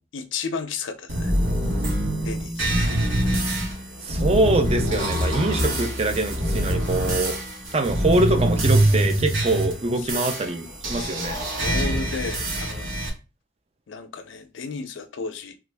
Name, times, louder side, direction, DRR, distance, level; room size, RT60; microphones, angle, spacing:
voice 1, 0.1-1.3 2.2-2.8 10.1-10.3 11.0-13.0 13.9-15.6, left 4 dB, 80° left, 0.4 m, -33 dB
sound 1, 1.1-13.1, right 1 dB, 85° right, 1.3 m, -24 dB
voice 2, 4.0-7.4 7.7-11.4, right 2 dB, 30° right, 0.5 m, -24 dB
3.0 x 2.5 x 3.3 m
head